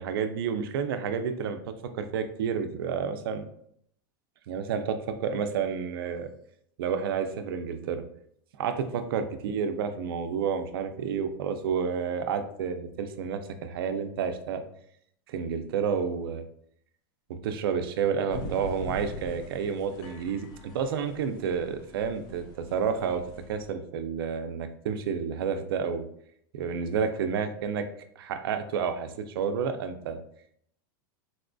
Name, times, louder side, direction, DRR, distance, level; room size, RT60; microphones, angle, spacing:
voice 1, 0.0-1.6 1.9-3.5 4.5-6.3 6.8-8.0 8.6-14.6 15.3-16.4 17.3-20.5 20.7-22.4 22.7-23.2 23.5-26.1 26.5-27.8 28.2-30.2, right 6 dB, 85° right, 8 dB, 0.5 m, -30 dB
sound 1, 18.3-23.7, equal, 35° left, 0.6 m, -43 dB
4.0 x 2.5 x 2.2 m, 0.67 s
supercardioid pair, 155°, 12 cm